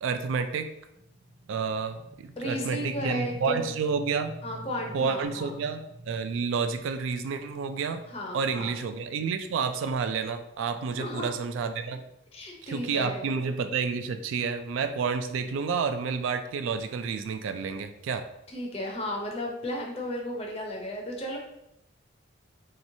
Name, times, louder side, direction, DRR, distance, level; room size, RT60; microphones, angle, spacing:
voice 1, 0.0-0.7 1.5-4.3 4.9-8.0 8.3-12.0 12.6-18.2, right 5 dB, 75° right, 8 dB, 0.3 m, -30 dB
sound 1, 0.9-12.4, right 1 dB, 50° right, 1.1 m, -47 dB
voice 2, 2.4-3.7 4.4-5.6 8.1-8.7 10.9-11.3 12.3-13.3 18.5-21.4, left 1 dB, 30° left, 0 dB, 0.5 m, -34 dB
3.1 x 2.9 x 2.6 m, 0.83 s
head